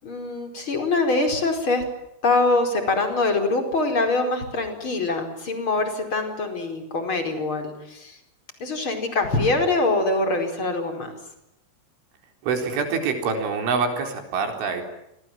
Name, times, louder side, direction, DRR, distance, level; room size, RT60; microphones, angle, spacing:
voice 1, 0.0-1.8 2.2-8.2 8.6-11.2, left 3 dB, 25° left, 5 dB, 5.0 m, -24 dB
voice 2, 12.4-14.9, right 5 dB, 80° right, 5 dB, 6.7 m, -25 dB
28.0 x 25.5 x 7.6 m, 0.84 s
omnidirectional pair, 5.5 m